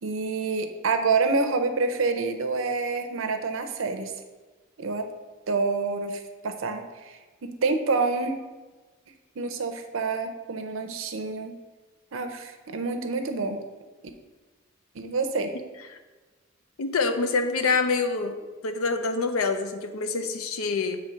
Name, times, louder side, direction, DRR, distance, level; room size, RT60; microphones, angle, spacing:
voice 1, 0.0-4.1 4.8-5.1 5.5-8.4 9.4-11.6 12.1-13.6 14.9-15.5, right 4 dB, 70° right, 7 dB, 0.6 m, -27 dB
voice 2, 16.8-18.4 18.6-21.0, left 4 dB, 85° left, 8 dB, 0.6 m, -26 dB
6.8 x 3.2 x 4.9 m, 1.3 s
head